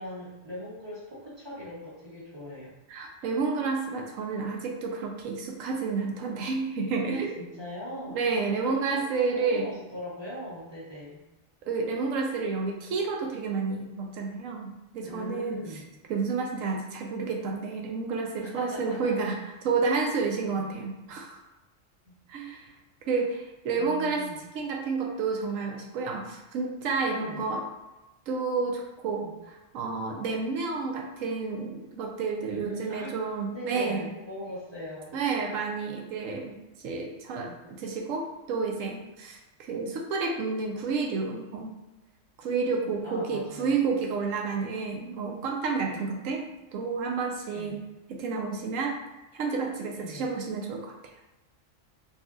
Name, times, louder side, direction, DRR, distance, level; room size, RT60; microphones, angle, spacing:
voice 1, 0.0-2.7 7.0-8.2 8.6-11.2 15.0-15.9 18.4-19.1 20.5-20.7 22.0-22.1 23.7-24.4 27.2-27.4 29.2-29.4 32.5-33.1 33.5-35.1 37.4-37.6 42.8-43.8 45.9-46.0 47.5-47.9 49.9-50.3, equal, 20° right, -8 dB, 1.1 m, -41 dB
voice 2, 2.9-7.4 8.1-9.7 11.7-15.6 16.1-21.4 22.3-22.7 23.1-24.3 24.5-27.7 28.3-34.1 35.1-41.8 42.4-46.4 46.7-47.8 48.1-49.0 49.3-50.9, right 4 dB, 85° right, 1 dB, 1.0 m, -30 dB
4.1 x 2.6 x 2.4 m, 1.1 s
omnidirectional pair, 1.3 m